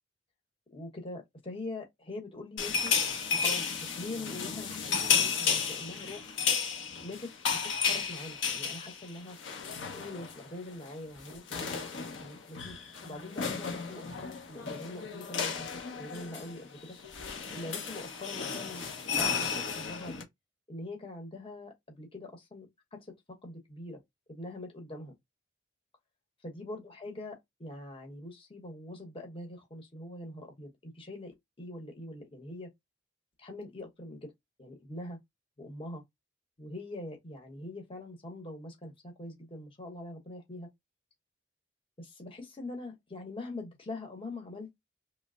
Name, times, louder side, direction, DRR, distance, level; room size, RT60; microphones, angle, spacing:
voice 1, 0.7-2.9 3.3-6.4 7.0-9.4 9.9-17.0 17.5-20.3 20.7-23.1 23.4-24.0 24.3-25.1 26.4-32.7 33.4-34.3 34.6-35.2 35.6-36.0 36.6-40.7 42.0-44.7, left 2 dB, 30° left, 1.0 m, -43 dB
sound 1, 2.6-10.5 10.7-10.9 11.2-20.2, left 6 dB, 80° left, 0.9 m, -33 dB
3.1 x 2.0 x 3.6 m
head